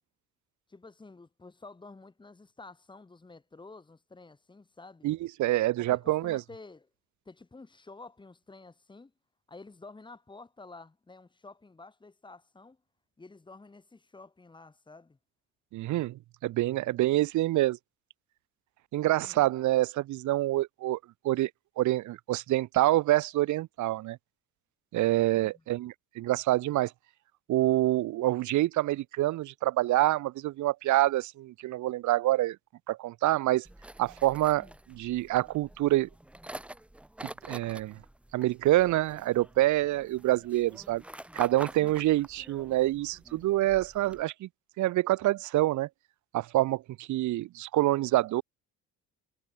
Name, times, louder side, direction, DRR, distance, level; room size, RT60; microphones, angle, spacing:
voice 1, 0.7-5.1 5.8-6.9 7.2-9.1 9.5-12.8 13.2-15.2 19.2-19.5 25.3-25.6 34.6-34.8 41.8-42.0, left 3 dB, 15° left, 2.9 m, -50 dB
voice 2, 5.0-6.4 15.7-17.8 18.9-21.0 21.2-21.5 21.8-24.2 24.9-26.9 27.5-32.6 32.9-33.7 34.0-36.1 37.5-38.0 38.3-41.0 41.3-44.5 44.8-45.9 46.3-48.4, right 16 dB, 55° right, 0.8 m, -26 dB
sound 1, 33.6-44.2, right 1 dB, 5° right, 0.9 m, -47 dB
cardioid pair, 160°, 34 cm